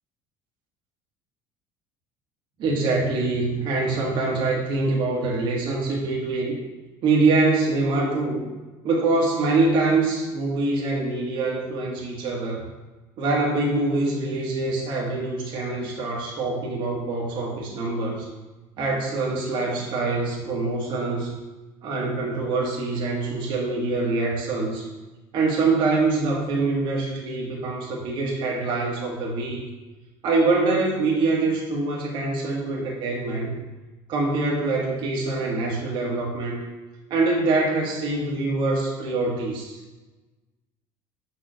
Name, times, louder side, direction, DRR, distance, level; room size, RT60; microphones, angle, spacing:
voice 1, 2.6-6.5 7.0-8.4 8.8-12.7 13.2-18.3 18.8-21.4 21.8-24.9 25.3-29.6 30.2-33.6 34.1-36.6 37.1-39.8, right 3 dB, 55° right, -2 dB, 1.6 m, -24 dB
5.9 x 4.8 x 6.4 m, 1.2 s
cardioid pair, 130°, 10 cm